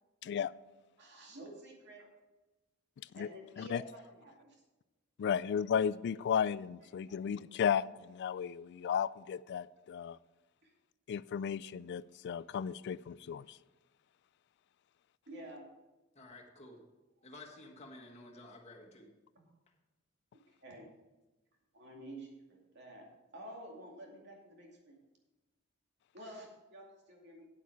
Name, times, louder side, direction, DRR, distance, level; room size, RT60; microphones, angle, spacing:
voice 1, 0.2-0.5 3.1-3.3 3.6-3.8 5.2-10.2 11.1-13.6, left 7 dB, 55° left, 19 dB, 0.3 m, -34 dB
voice 2, 1.0-2.1 3.2-4.6 10.6-10.7 15.3-15.7 20.5-20.9 21.7-25.0 26.1-27.4, right 1 dB, 55° right, 0 dB, 2.4 m, -50 dB
voice 3, 16.1-16.8 17.2-19.1, left 2 dB, 35° left, 0 dB, 1.5 m, -52 dB
9.3 x 8.3 x 4.6 m, 1.1 s
head